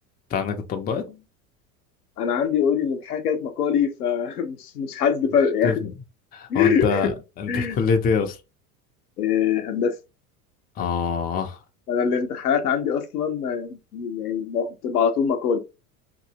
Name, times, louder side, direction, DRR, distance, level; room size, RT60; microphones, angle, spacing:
voice 1, 0.3-1.1 5.6-5.9 6.3-8.4 10.8-11.6, left 5 dB, 20° left, 0.5 m, -25 dB
voice 2, 2.2-5.8 6.5-7.1 7.5-7.8 9.2-9.9 11.9-15.6, left 7 dB, 75° left, 0.8 m, -23 dB
2.9 x 2.6 x 2.8 m
figure-of-eight pair, 75°, 46 cm